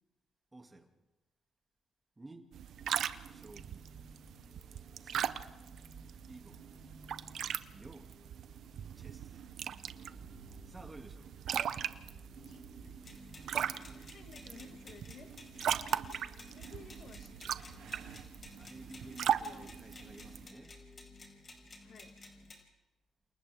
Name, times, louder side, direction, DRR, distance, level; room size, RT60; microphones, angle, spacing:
voice 1, 0.5-0.9 2.2-2.5 3.3-3.8 5.0-5.4 6.3-6.6 7.7-8.1 9.0-9.4 10.7-11.3 18.6-20.7, right 2 dB, 20° right, 4 dB, 2.3 m, -53 dB
sound 1, 2.5-20.5, right 9 dB, 70° right, 0.8 m, -39 dB
sound 2, 2.7-22.5, left 1 dB, 5° left, 2.1 m, -57 dB
voice 2, 12.4-15.7 16.4-17.6 19.3-20.3 21.8-22.1, left 5 dB, 60° left, 6 dB, 2.0 m, -57 dB
sound 3, 13.0-22.6, left 2 dB, 35° left, 5.0 m, -55 dB
29.0 x 28.5 x 3.6 m, 1.1 s
cardioid pair, 90°, 0 cm